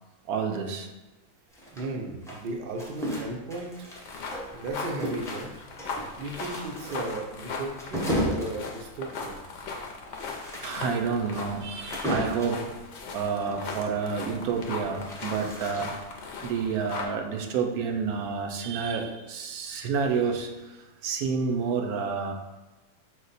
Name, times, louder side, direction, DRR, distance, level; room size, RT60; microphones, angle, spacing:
voice 1, 0.3-0.9 10.2-12.6 13.1-15.9 16.4-22.3, right 5 dB, 85° right, 4 dB, 1.0 m, -29 dB
sound 1, 1.5-4.6 5.0-12.7 14.5-16.2, equal, 5° left, 0.5 m, -34 dB
voice 2, 1.8-5.5 6.2-9.4, right 2 dB, 65° right, 2 dB, 0.5 m, -35 dB
sound 2, 4.0-17.1, left 4 dB, 65° left, 0.8 m, -39 dB
5.0 x 2.1 x 4.0 m, 1.1 s
omnidirectional pair, 1.5 m